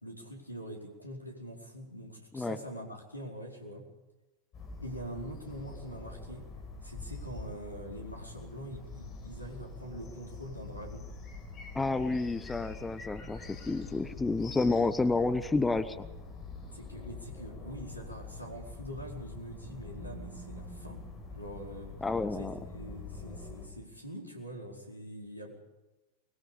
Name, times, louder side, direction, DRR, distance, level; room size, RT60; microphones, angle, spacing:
voice 1, 0.0-3.9 4.8-6.5 6.8-11.1 16.7-21.0 21.3-22.0 22.3-25.6, equal, 85° left, 1 dB, 4.7 m, -44 dB
sound 1, 4.5-23.7, left 3 dB, 30° left, 7.0 m, -45 dB
voice 2, 11.7-16.0 22.0-22.5, left 3 dB, 10° left, 12 dB, 1.0 m, -30 dB
24.0 x 21.5 x 5.2 m, 1.1 s
figure-of-eight pair, 90°, 0 cm